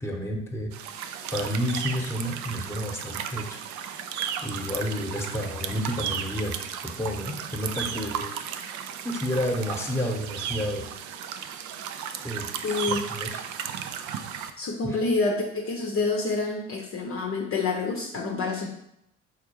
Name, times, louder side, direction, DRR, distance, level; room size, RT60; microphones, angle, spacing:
voice 1, 0.0-3.6 4.4-6.5 6.8-10.9 12.2-13.4 14.8-15.0, equal, 5° left, 1 dB, 1.0 m, -31 dB
sound 1, 0.7-14.5, right 8 dB, 55° right, 0.5 m, -35 dB
voice 2, 12.6-13.0 14.6-18.7, left 3 dB, 40° left, 0 dB, 0.7 m, -27 dB
4.3 x 2.4 x 4.5 m, 0.78 s
hypercardioid pair, 60°, 35 cm